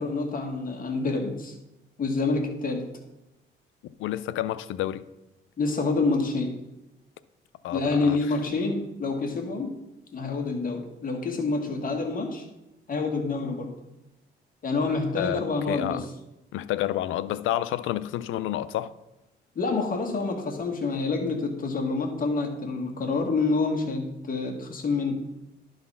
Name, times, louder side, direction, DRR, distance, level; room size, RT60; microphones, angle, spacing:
voice 1, 0.0-1.5 2.0-2.9 5.6-6.6 7.7-9.8 10.1-12.4 12.9-13.7 14.6-16.1 19.6-25.2, left 3 dB, 45° left, 1.8 m, -27 dB
voice 2, 4.0-5.0 7.6-8.2 15.2-16.1 16.5-18.9, left 13 dB, 80° left, 0.5 m, -29 dB
11.5 x 4.0 x 5.5 m
cardioid pair, 90°, 20 cm